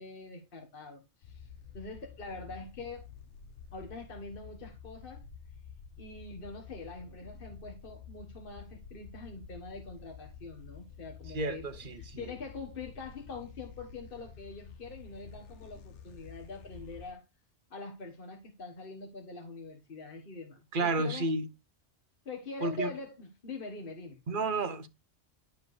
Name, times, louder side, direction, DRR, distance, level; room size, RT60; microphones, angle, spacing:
voice 1, 0.0-1.4 1.7-3.0 3.7-5.3 6.0-11.6 12.0-17.2 17.7-21.3 22.2-24.2, left 3 dB, 50° left, 1.6 m, -44 dB
sound 1, 1.2-17.1, left 7 dB, 85° left, 1.1 m, -50 dB
voice 2, 11.3-12.3 20.7-21.5 22.6-22.9 24.3-24.9, right 3 dB, 50° right, 1.1 m, -31 dB
11.5 x 4.6 x 3.2 m
omnidirectional pair, 1.2 m